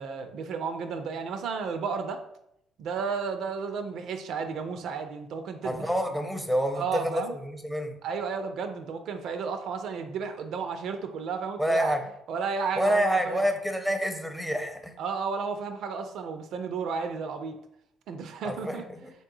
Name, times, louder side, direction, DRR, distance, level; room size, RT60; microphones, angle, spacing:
voice 1, 0.0-2.2 2.8-5.9 6.8-7.4 8.0-12.0 12.3-13.4 15.0-17.6 18.1-18.8, right 5 dB, 70° right, 7 dB, 0.4 m, -33 dB
voice 2, 5.6-8.0 11.6-12.0 12.8-14.9 18.4-19.1, equal, ahead, 5 dB, 0.6 m, -28 dB
3.3 x 2.8 x 2.6 m, 0.77 s
hypercardioid pair, 55°, 0 cm